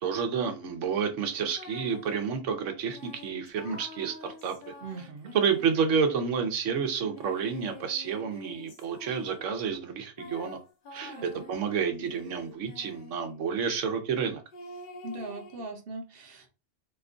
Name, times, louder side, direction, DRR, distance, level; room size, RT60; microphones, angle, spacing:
voice 1, 0.0-4.6 5.3-10.6 10.9-14.4, right 6 dB, 85° right, 1.1 m, -30 dB
sound 1, 1.5-2.2 2.9-6.1 7.0-9.5 10.2-13.2 14.5-15.6, left 3 dB, 50° left, 0.8 m, -47 dB
voice 2, 4.8-5.3 11.0-11.4 15.0-16.5, right 2 dB, 55° right, 0.9 m, -40 dB
2.9 x 2.3 x 3.6 m
omnidirectional pair, 1.2 m